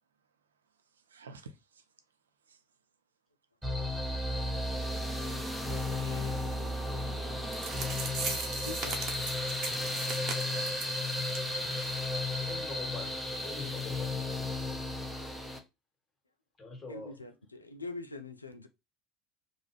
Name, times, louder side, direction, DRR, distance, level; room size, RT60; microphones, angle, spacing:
voice 1, 1.1-1.8 2.5-2.6 6.0-6.4 7.6-7.9 11.6-12.1, right 4 dB, 80° right, 0.4 m, -53 dB
sound 1, 3.6-15.6, left 2 dB, 5° right, 0.7 m, -34 dB
voice 2, 5.8-6.7 8.6-9.0 16.9-18.7, left 3 dB, 90° left, 0.3 m, -44 dB
sound 2, 7.2-7.3 7.5-10.9 11.3-11.5 11.8-11.9 12.4-12.5, right 4 dB, 45° right, 0.9 m, -38 dB
voice 3, 12.5-14.5 16.6-17.2, left 3 dB, 30° left, 1.7 m, -44 dB
2.5 x 2.3 x 3.1 m
figure-of-eight pair, 70°, 0 cm